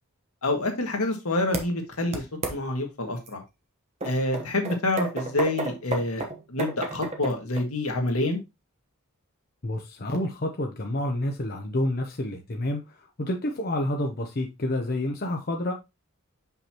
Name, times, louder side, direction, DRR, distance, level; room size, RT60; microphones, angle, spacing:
voice 1, 0.4-2.2 2.5-3.4 4.0-8.4, left 2 dB, 80° left, 1.6 m, -27 dB
sound 1, 1.5-1.6 2.1-2.6 3.3-3.4 4.0-7.6, right 2 dB, 30° right, 1.0 m, -31 dB
voice 2, 9.6-15.7, left 1 dB, 45° left, 0.7 m, -29 dB
5.9 x 5.6 x 2.9 m
head